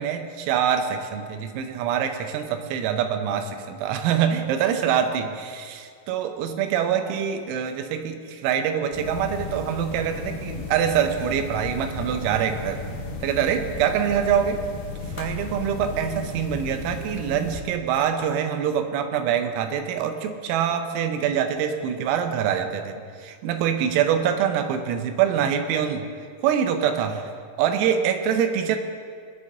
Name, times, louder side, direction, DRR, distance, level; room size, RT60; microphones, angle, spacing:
voice 1, 0.0-12.8 13.2-14.6 15.2-26.1 26.4-27.3 27.6-28.8, right 8 dB, 85° right, 7 dB, 3.6 m, -25 dB
sound 1, 8.9-17.6, left 3 dB, 65° left, 2.8 m, -34 dB
18.5 x 9.8 x 3.8 m, 2.2 s
omnidirectional pair, 6.0 m